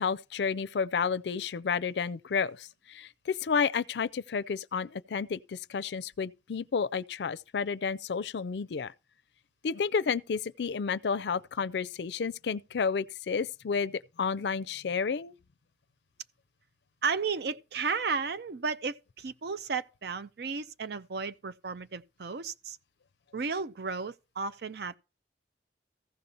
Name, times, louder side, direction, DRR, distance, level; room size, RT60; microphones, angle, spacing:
voice 1, 0.0-8.9 9.6-15.3, left 5 dB, 70° left, 0.4 m, -31 dB
voice 2, 17.0-22.8 23.3-25.0, right 5 dB, 65° right, 0.6 m, -33 dB
15.0 x 5.3 x 4.3 m
head